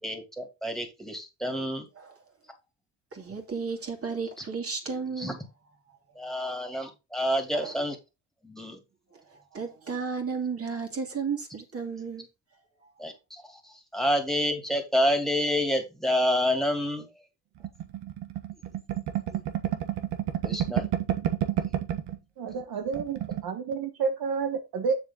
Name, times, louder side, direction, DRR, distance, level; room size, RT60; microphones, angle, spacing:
voice 1, 0.0-1.9 5.2-5.3 6.2-8.0 8.4-8.8 13.0-13.1 13.6-17.1 19.3-19.4 20.4-20.9, equal, ahead, 2.7 m, -28 dB
voice 2, 3.1-5.4 7.5-7.8 9.5-12.2, right 5 dB, 35° right, 2.8 m, -33 dB
sound 1, 17.6-22.2 22.5-22.6 22.9-23.5, right 11 dB, 80° right, 1.4 m, -30 dB
voice 3, 22.4-24.9, right 5 dB, 60° right, 1.5 m, -30 dB
7.5 x 6.9 x 3.8 m
cardioid pair, 100°, 41 cm